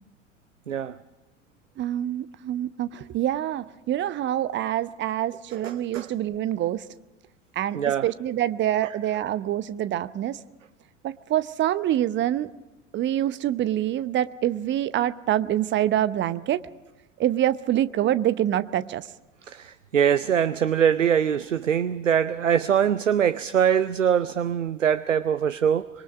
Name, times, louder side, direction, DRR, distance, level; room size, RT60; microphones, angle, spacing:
voice 1, 1.8-6.9 7.6-10.4 11.0-12.5 12.9-16.6 17.2-19.1, right 12 dB, 30° right, 0.8 m, -26 dB
voice 2, 19.5-25.9, right 8 dB, 80° right, 0.7 m, -23 dB
26.0 x 22.0 x 5.2 m
figure-of-eight pair, 75°, 37 cm